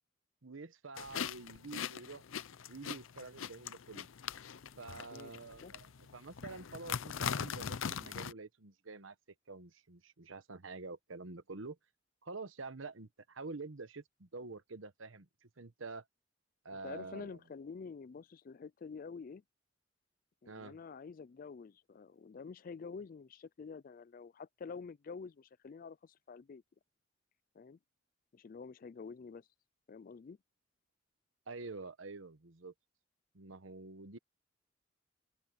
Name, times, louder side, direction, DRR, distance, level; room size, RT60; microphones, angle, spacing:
voice 1, 0.4-2.2 2.7-4.1 4.8-9.1 9.5-11.8 12.2-16.0 16.6-17.4 20.5-20.8 31.5-32.7 33.3-34.2, right 3 dB, 85° right, 1.1 m, -47 dB
sound 1, 1.0-8.3, left 7 dB, 85° left, 0.6 m, -41 dB
voice 2, 16.8-19.4 20.4-26.6 27.5-27.8 28.3-29.5 29.9-30.4, left 5 dB, 45° left, 0.3 m, -48 dB
open air
head